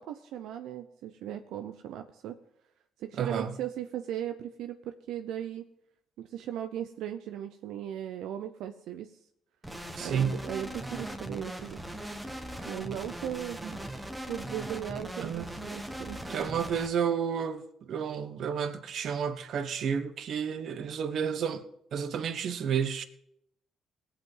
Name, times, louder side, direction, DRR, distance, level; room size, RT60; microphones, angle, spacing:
voice 1, 0.0-2.4 3.0-5.6 6.2-9.2 10.0-11.8 12.7-13.6 14.3-16.2, right 11 dB, 85° right, 0.7 m, -37 dB
voice 2, 3.2-3.5 10.0-10.4 13.6-13.7 15.2-15.5 16.3-21.6 21.9-23.0, right 7 dB, 60° right, 1.1 m, -31 dB
sound 1, 9.6-16.9, right 1 dB, 10° right, 1.3 m, -39 dB
18.0 x 8.2 x 3.9 m
cardioid pair, 105°, 0 cm